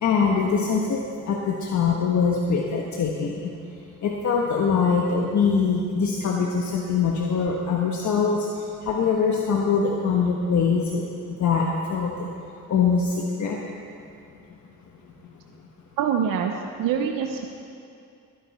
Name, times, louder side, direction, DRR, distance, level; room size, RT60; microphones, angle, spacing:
voice 1, 0.0-1.0 1.3-3.4 4.0-8.5 8.8-11.0 11.4-11.6 11.9-12.3 12.7-13.6, left 5 dB, 60° left, -1 dB, 1.3 m, -23 dB
voice 2, 16.0-16.5 16.8-17.4, right 8 dB, 85° right, 4 dB, 0.8 m, -24 dB
19.0 x 10.5 x 4.3 m, 2.5 s
cardioid pair, 95°, 32 cm